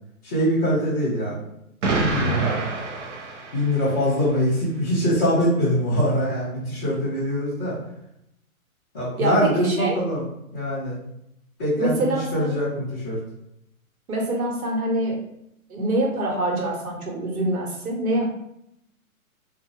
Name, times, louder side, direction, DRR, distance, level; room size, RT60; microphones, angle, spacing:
voice 1, 0.2-1.4 2.0-2.5 3.5-7.7 8.9-10.2 10.5-11.0 11.6-13.2, equal, 15° left, -12 dB, 0.7 m, -23 dB
Explosion, 1.8-4.0, right 3 dB, 55° right, 0.6 m, -26 dB
voice 2, 9.2-10.0 11.8-12.6 14.1-15.2 15.7-18.3, right 1 dB, 80° right, -1 dB, 1.1 m, -25 dB
2.2 x 2.1 x 3.0 m, 0.79 s
hypercardioid pair, 170°, 43 cm